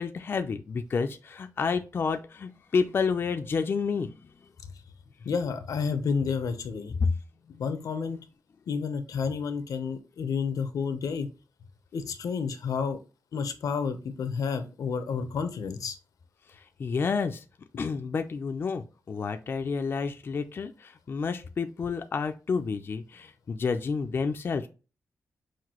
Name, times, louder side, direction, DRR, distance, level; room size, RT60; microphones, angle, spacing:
voice 1, 0.0-4.1 7.0-7.1 7.5-7.7 16.8-17.4 17.8-24.7, left 5 dB, 40° left, 0.4 m, -30 dB
voice 2, 5.2-6.9 7.6-8.2 8.7-11.3 11.9-13.0 13.3-16.0, left 5 dB, 85° left, 0.7 m, -30 dB
5.8 x 2.6 x 2.9 m
wide cardioid pair, 175°, 6 cm